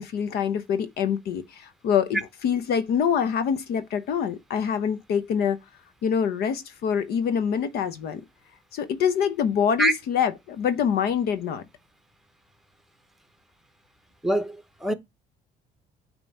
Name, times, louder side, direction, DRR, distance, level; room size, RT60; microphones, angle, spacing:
voice 1, 0.0-5.6 6.0-8.2 8.7-11.6, left 7 dB, 70° left, 0.8 m, -25 dB
voice 2, 14.2-14.9, right 1 dB, ahead, 0.9 m, -24 dB
8.9 x 3.0 x 5.4 m
cardioid pair, 110°, 17 cm